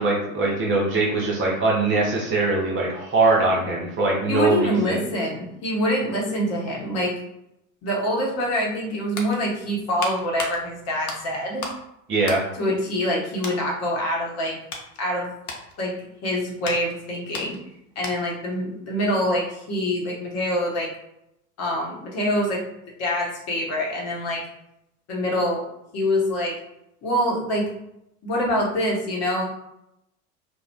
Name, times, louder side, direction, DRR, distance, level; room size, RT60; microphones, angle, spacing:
voice 1, 0.0-5.0 12.1-12.4, right 3 dB, 30° right, -3 dB, 0.7 m, -22 dB
voice 2, 4.3-7.2 7.8-11.7 12.5-14.5 15.0-15.3 15.8-15.9 16.2-17.6 18.0-20.9 21.6-22.6 23.0-24.4 25.1-25.6 25.9-26.6 27.0-27.7 28.2-29.4, equal, 35° left, -2 dB, 0.9 m, -25 dB
sound 1, 8.8-11.9 12.2-13.1 13.4-13.7 14.2-18.4 18.7-18.9, left 3 dB, 80° left, 0.7 m, -37 dB
2.4 x 2.1 x 3.4 m, 0.82 s
figure-of-eight pair, 75°, 43 cm